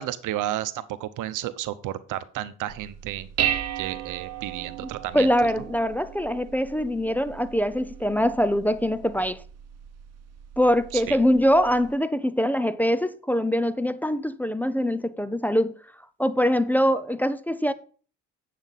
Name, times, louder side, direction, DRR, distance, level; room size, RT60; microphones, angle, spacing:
voice 1, 0.0-3.3 3.8-5.3 10.9-11.2, right 13 dB, 85° right, 0.8 m, -32 dB
Dishes pots and pans, 2.7-11.9, right 10 dB, 55° right, 0.9 m, -35 dB
voice 2, 5.1-9.4 10.6-15.7 16.2-17.7, equal, 5° left, 0.5 m, -23 dB
9.0 x 7.6 x 4.0 m
cardioid pair, 90°, 30 cm